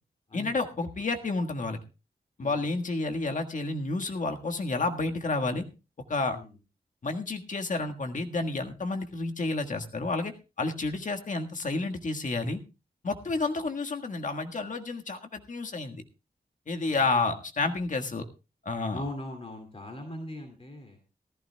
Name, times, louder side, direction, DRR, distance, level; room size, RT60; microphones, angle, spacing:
voice 1, 0.3-1.8 2.4-5.6 6.1-6.4 7.0-10.3 10.6-12.6 13.0-16.0 16.7-18.2 18.6-19.0, left 3 dB, 55° left, 5 dB, 1.6 m, -30 dB
voice 2, 16.9-17.3 18.9-21.0, left 1 dB, 35° left, 4 dB, 2.5 m, -40 dB
18.5 x 14.5 x 2.2 m, 0.29 s
wide cardioid pair, 85°, 16 cm